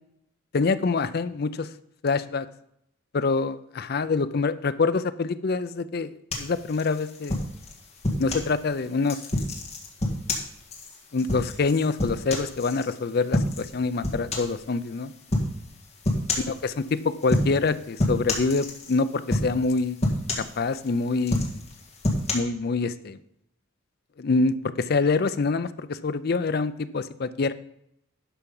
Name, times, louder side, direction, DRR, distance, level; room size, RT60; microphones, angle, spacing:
voice 1, 0.5-1.7 2.0-2.5 3.1-7.4 8.2-9.2 11.1-15.1 16.5-16.8 17.2-20.0 20.6-21.6 22.3-23.2 24.2-27.5, left 4 dB, 50° left, 12 dB, 0.5 m, -25 dB
sound 1, 6.3-8.5 9.0-12.9 13.3-13.7 14.0-14.6 15.3-15.5 16.0-16.6 17.2-17.7 18.0-19.0 19.3-19.7 20.0-20.9 21.2-22.3, left 1 dB, 35° left, 1.8 m, -27 dB
11.5 x 5.9 x 5.4 m, 0.76 s
head